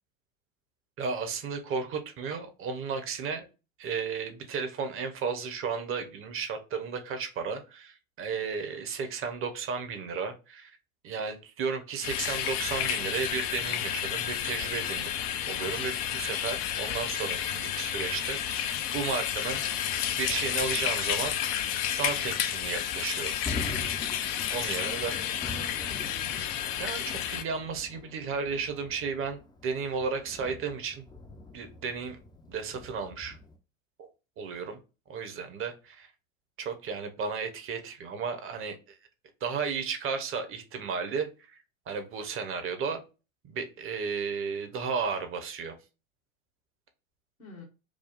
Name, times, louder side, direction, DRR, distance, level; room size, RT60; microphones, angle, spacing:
voice 1, 1.0-3.5 3.8-10.7 11.0-15.1 15.5-19.6 20.1-21.3 22.0-23.3 24.5-25.1 26.8-31.0 31.5-32.2 32.5-33.4 34.0-34.1 34.4-34.8 35.1-36.1 36.6-38.9 39.4-41.6 41.9-43.0 43.5-45.8, right 5 dB, 30° right, 7 dB, 1.1 m, -34 dB
sound 1, 12.0-27.4, left 10 dB, 45° left, 0.6 m, -31 dB
Thunder, 22.8-33.6, left 2 dB, 10° left, 0.7 m, -44 dB
voice 2, 24.7-26.4 47.4-47.7, left 2 dB, 85° left, -3 dB, 1.8 m, -47 dB
4.9 x 2.3 x 3.9 m, 0.30 s
figure-of-eight pair, 80°, 41 cm